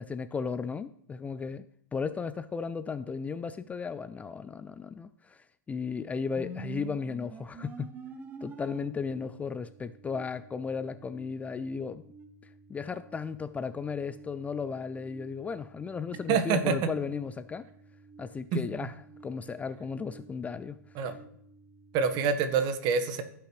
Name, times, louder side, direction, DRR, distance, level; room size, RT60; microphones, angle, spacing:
voice 1, 0.0-1.7 1.9-7.9 8.4-12.1 12.7-17.7 18.2-18.9 19.2-20.8, left 5 dB, 15° left, 0.3 m, -35 dB
sound 1, 6.3-22.3, right 3 dB, 20° right, 1.2 m, -50 dB
voice 2, 16.3-16.8 21.0-21.1 21.9-23.2, right 6 dB, 45° right, 1.3 m, -26 dB
15.0 x 5.9 x 3.2 m
hypercardioid pair, 110°, 10 cm